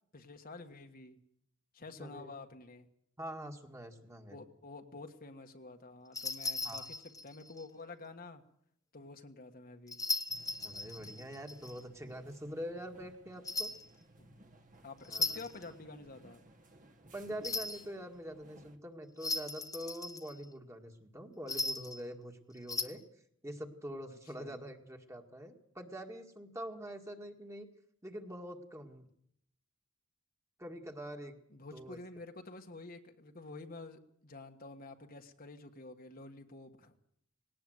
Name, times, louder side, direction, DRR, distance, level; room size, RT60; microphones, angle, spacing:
voice 1, 0.1-1.2 1.7-2.9 4.3-6.9 7.2-8.4 8.9-10.0 14.2-14.4 14.8-16.4 24.1-24.6 31.5-37.0, left 3 dB, 45° left, 5 dB, 1.5 m, -49 dB
voice 2, 2.0-2.3 3.2-4.4 6.6-6.9 10.6-13.7 15.0-15.4 17.1-23.0 23.4-27.7 28.0-29.1 30.6-31.4 31.7-32.0, equal, 15° right, 4 dB, 2.0 m, -45 dB
sound 1, 6.1-7.6 9.9-11.8 13.4-13.9 15.0-15.6 17.4-17.8 19.2-20.4 21.5-22.0 22.6-22.8, left 3 dB, 15° left, 1.5 m, -37 dB
sound 2, 10.3-18.8, right 1 dB, 40° right, 1.7 m, -60 dB
19.5 x 18.0 x 7.9 m, 0.68 s
head